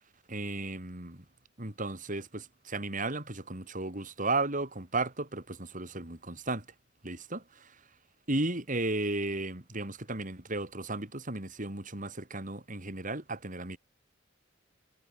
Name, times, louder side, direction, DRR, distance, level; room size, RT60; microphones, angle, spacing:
voice 1, 0.3-1.2 1.6-6.7 7.0-7.7 8.3-13.8, right 2 dB, 45° right, 4.1 m, -34 dB
head